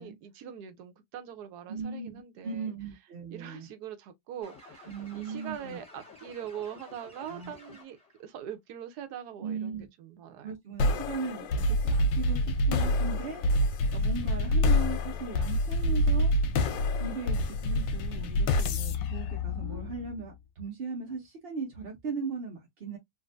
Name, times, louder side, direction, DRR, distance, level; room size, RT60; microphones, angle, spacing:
voice 1, 0.0-2.7 3.3-10.5, right 9 dB, 70° right, 1.2 m, -42 dB
voice 2, 1.7-3.7 4.9-5.8 7.3-7.5 9.4-9.9 10.4-13.4 13.9-16.3 17.0-23.0, right 4 dB, 50° right, 0.7 m, -38 dB
sound 1, 4.4-8.2, left 3 dB, 5° left, 1.2 m, -51 dB
sound 2, 10.8-20.2, left 1 dB, 90° left, 1.4 m, -27 dB
3.7 x 2.5 x 2.5 m
omnidirectional pair, 1.9 m